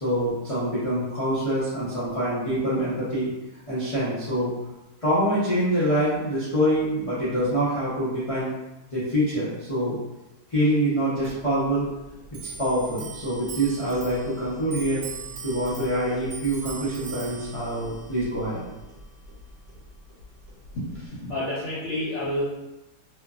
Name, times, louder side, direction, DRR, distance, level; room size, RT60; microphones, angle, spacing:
voice 1, 0.0-3.3 3.7-4.5 5.0-8.5 8.9-10.0 10.5-11.8 12.6-15.0 15.4-18.6, right 1 dB, 40° left, -12 dB, 0.5 m, -25 dB
Clock, 11.2-21.1, right 4 dB, 90° right, 1.2 m, -41 dB
voice 2, 20.7-22.4, left 1 dB, 55° left, -9 dB, 0.9 m, -29 dB
2.9 x 2.2 x 2.4 m, 1.0 s
omnidirectional pair, 1.8 m